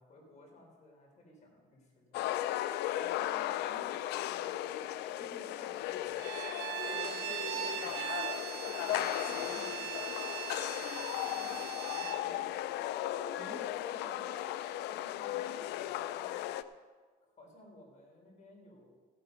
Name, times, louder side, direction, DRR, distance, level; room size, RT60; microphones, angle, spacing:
voice 1, 0.0-2.2 6.8-8.0 11.1-12.5 12.9-16.4 17.2-18.9, left 1 dB, 45° left, -1 dB, 4.7 m, -54 dB
sound 1, 2.1-16.6, left 13 dB, 85° left, 0.5 m, -36 dB
voice 2, 3.0-4.9 5.2-6.3 8.5-10.1 13.4-13.6, right 2 dB, 30° right, 0 dB, 2.0 m, -56 dB
Bowed string instrument, 6.2-12.2, right 12 dB, 80° right, 0.7 m, -40 dB
16.5 x 7.9 x 5.6 m, 1.4 s
cardioid pair, 110°, 17 cm